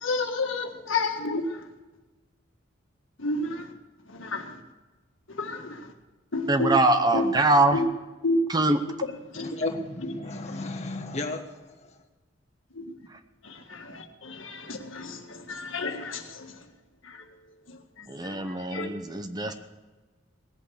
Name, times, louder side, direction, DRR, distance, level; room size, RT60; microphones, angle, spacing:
voice 1, 0.0-1.5 3.2-3.7 4.1-4.5 5.4-5.8 6.3-6.7 7.1-7.3 7.7-7.9 8.2-8.4 9.3-9.5 10.5-10.6 12.8-12.9 13.4-16.5 17.1-17.2 18.7-18.9, left 3 dB, 75° left, 4 dB, 1.7 m, -30 dB
voice 2, 6.5-7.8 8.5-8.8 18.1-19.5, right 2 dB, 20° right, 8 dB, 0.8 m, -23 dB
voice 3, 9.3-11.5 11.8-11.9, left 2 dB, 35° left, 2 dB, 1.5 m, -34 dB
19.0 x 8.4 x 6.4 m, 1.2 s
head